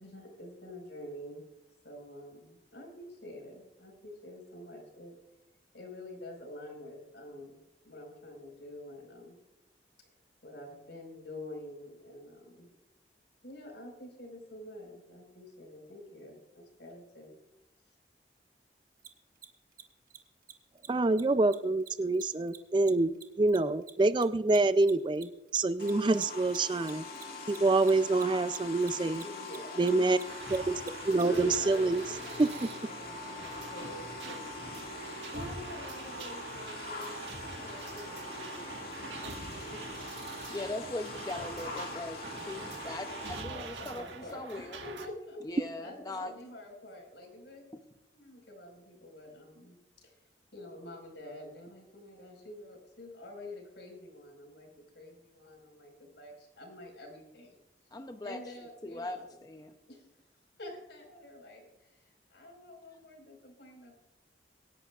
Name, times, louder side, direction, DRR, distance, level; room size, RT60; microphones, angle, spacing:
voice 1, 0.0-1.4 1.8-5.1 5.7-7.6 7.8-9.3 10.4-12.7 13.4-17.4 17.9-18.0 29.2-30.1 31.2-34.5 35.3-39.8 42.3-42.7 43.5-45.4 45.8-47.7 48.1-50.1 50.5-57.6 58.2-59.2 59.9-60.1 60.6-64.0, left 1 dB, 80° left, 2 dB, 4.8 m, -48 dB
Mechanisms, 19.0-19.1 19.4-19.5 19.7-19.8 20.1-20.2 20.4-20.5 20.8-20.9 21.1-21.2 21.5-24.2 24.5-31.6, right 9 dB, 50° right, 1.1 m, -49 dB
voice 2, 20.9-27.0 27.5-29.2 29.8-30.2 30.5-30.7 31.0-32.0 32.4-32.7, right 2 dB, 25° right, 13 dB, 0.4 m, -26 dB
sound 1, 25.8-43.4, left 3 dB, 55° left, 2.1 m, -43 dB
sound 2, 30.3-45.1, right 4 dB, 80° right, 1.6 m, -44 dB
voice 3, 40.5-42.2 42.5-44.8 45.4-46.3 57.9-58.4 58.8-59.7, left 2 dB, 20° left, 5 dB, 0.6 m, -40 dB
25.0 x 11.0 x 2.4 m, 0.93 s
head